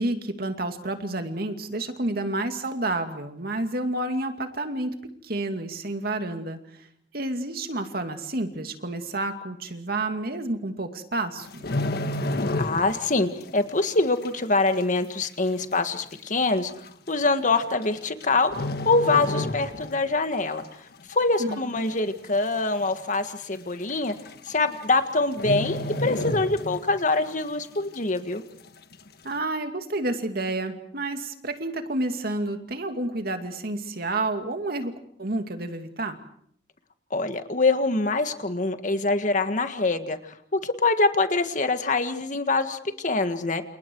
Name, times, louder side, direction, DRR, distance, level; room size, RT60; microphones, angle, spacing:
voice 1, 0.0-5.0 5.2-6.6 7.1-11.7 21.4-21.6 29.2-34.9 35.2-36.2, right 2 dB, 60° right, 6 dB, 2.6 m, -29 dB
sound 1, 11.4-13.1 13.4-13.7 14.2-14.3 15.2-15.3 15.6-15.7 16.5-16.7 17.8-18.2 18.5-20.1 20.4-20.6 21.1-21.6 22.0-22.1 22.3-22.4 22.8-22.9 23.9-24.0 24.3-24.6 24.8-25.0 25.3-27.0 27.3-27.4, left 1 dB, 60° left, 1.5 m, -30 dB
voice 2, 12.6-16.7 17.1-20.6 21.1-24.1 24.5-28.4 37.1-40.2 40.5-43.6, left 3 dB, 45° left, 8 dB, 1.7 m, -24 dB
29.0 x 28.5 x 4.8 m, 0.64 s
head